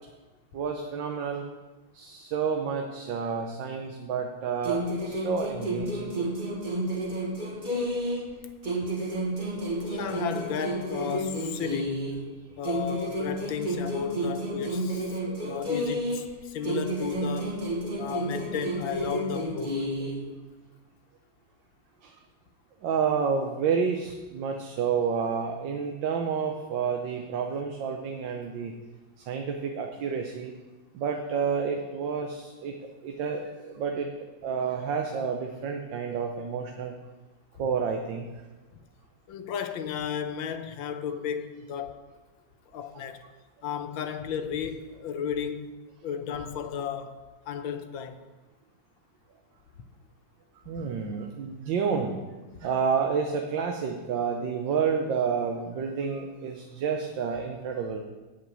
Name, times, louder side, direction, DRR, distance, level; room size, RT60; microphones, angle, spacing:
voice 1, 0.5-1.4 1.9-6.3 6.6-6.7 9.6-10.2 15.3-15.6 22.0-22.1 22.8-28.8 29.2-30.5 30.9-34.1 34.4-36.9 37.6-38.3 42.9-43.0 50.7-52.2 52.6-58.0, right 6 dB, 75° right, 3 dB, 1.5 m, -30 dB
sound 1, 4.6-8.3 8.6-12.3 12.6-16.3 16.6-20.3, right 1 dB, 25° right, 1.5 m, -31 dB
voice 2, 9.8-12.0 12.6-17.7 18.0-19.8 39.3-42.0 42.7-43.2 43.6-45.7 46.0-48.2 50.8-50.9, left 8 dB, 85° left, 8 dB, 1.5 m, -34 dB
8.6 x 6.2 x 8.1 m, 1.2 s
omnidirectional pair, 2.1 m